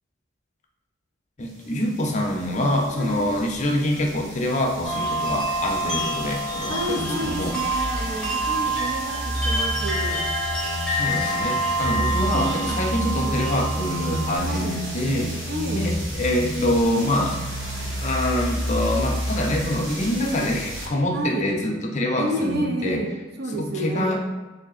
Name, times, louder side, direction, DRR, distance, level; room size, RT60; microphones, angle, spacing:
voice 1, 1.4-7.5 10.9-17.4 18.0-23.0 23.5-24.2, left 1 dB, 35° left, 1 dB, 0.5 m, -25 dB
sound 1, 2.3-20.9, equal, 70° right, 1.1 m, -31 dB
voice 2, 2.9-3.4 6.7-10.3 12.3-12.8 13.1-13.4 14.4-14.8 15.5-15.9 20.2-20.5 21.1-21.5 22.2-24.2, right 1 dB, 55° right, 2 dB, 0.5 m, -30 dB
sound 2, 4.8-14.4, right 2 dB, ahead, 0.8 m, -27 dB
3.2 x 2.7 x 4.1 m, 1.2 s
head